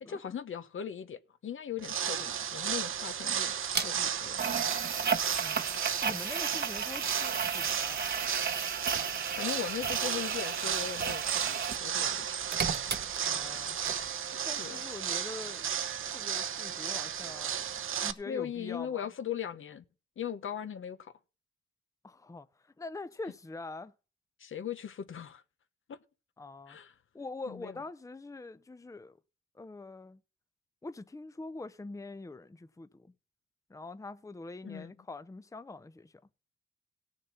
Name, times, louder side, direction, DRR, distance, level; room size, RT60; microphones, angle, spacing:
voice 1, 0.0-3.5 3.8-4.4 9.4-12.3 14.6-14.8 18.3-19.8 20.2-21.1 24.4-25.4 25.9-26.0 26.7-26.9 27.5-27.7 34.6-34.9, left 9 dB, 70° left, 1.0 m, -39 dB
sound 1, 1.8-18.1, right 8 dB, 75° right, 0.9 m, -34 dB
sound 2, 3.7-3.9 4.4-11.8 12.1-13.6 13.9-14.0, right 6 dB, 50° right, 1.0 m, -34 dB
voice 2, 5.4-8.0 13.2-13.8 14.4-15.7 16.1-17.6 18.0-19.1 22.0-23.9 26.4-26.8 27.1-29.2 29.5-30.2 30.8-33.1 33.7-36.2, left 3 dB, 15° left, 0.6 m, -44 dB
16.5 x 6.6 x 5.7 m
cardioid pair, 70°, 21 cm